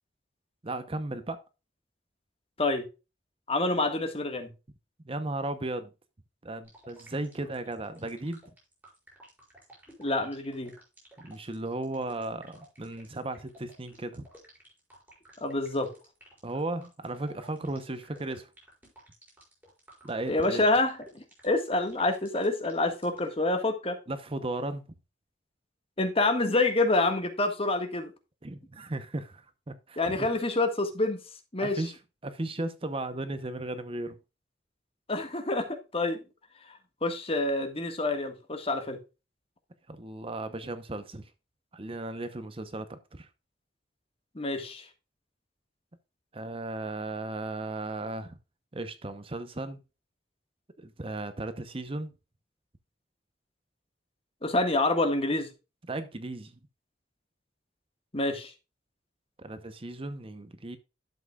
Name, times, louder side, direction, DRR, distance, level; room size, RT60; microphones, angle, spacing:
voice 1, 0.6-1.4 5.0-5.9 6.4-8.4 11.2-14.2 16.4-18.5 20.0-20.6 24.1-24.8 28.4-30.3 31.6-32.0 32.2-34.2 39.9-41.3 41.7-43.3 46.3-48.4 48.7-49.8 50.8-52.1 55.8-56.6 59.4-60.8, right 2 dB, 30° right, 0.8 m, -35 dB
voice 2, 3.5-4.5 10.0-10.7 15.4-15.9 20.3-24.0 26.0-28.1 30.0-31.2 31.5-31.8 35.1-36.2 36.7-39.0 44.3-44.9 54.4-55.5 58.1-58.5, left 2 dB, 30° left, 1.6 m, -27 dB
sound 1, 6.6-23.3, right 1 dB, 10° right, 6.1 m, -54 dB
12.0 x 7.4 x 2.4 m
head